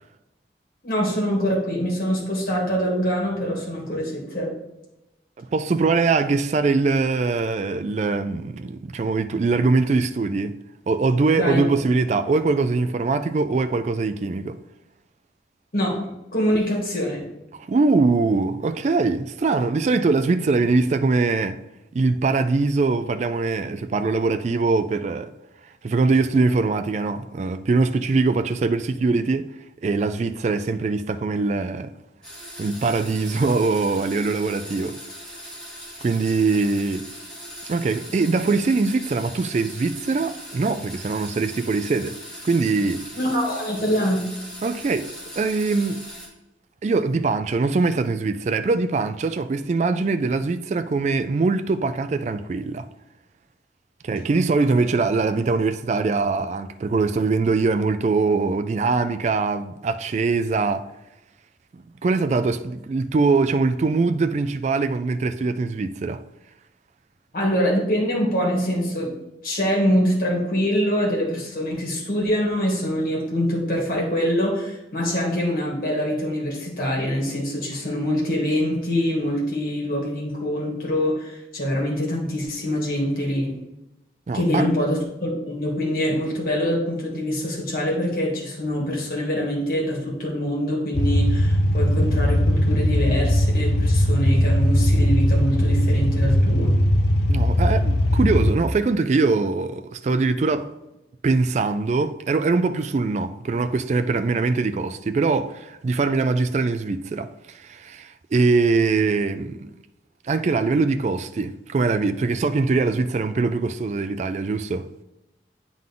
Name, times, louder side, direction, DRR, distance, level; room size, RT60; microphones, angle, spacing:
voice 1, 0.8-4.5 11.4-11.6 15.7-16.0 16.3-17.2 43.1-44.2 67.3-69.1 69.4-83.6 84.3-96.7, equal, 50° left, 2.3 m, -24 dB
voice 2, 5.4-10.5 10.9-14.6 17.7-21.6 21.9-25.3 25.8-29.5 29.8-31.9 32.6-35.0 36.0-37.1 37.7-42.2 42.4-43.0 44.6-46.0 46.8-52.9 54.0-60.9 61.7-66.2 84.3-84.7 97.3-100.7 101.2-109.7 110.2-114.9, right 3 dB, 40° right, 0.3 m, -22 dB
sound 1, 32.2-46.3, equal, 5° left, 2.1 m, -39 dB
sound 2, 90.9-98.5, left 1 dB, 70° left, 0.6 m, -19 dB
9.0 x 3.8 x 3.7 m
head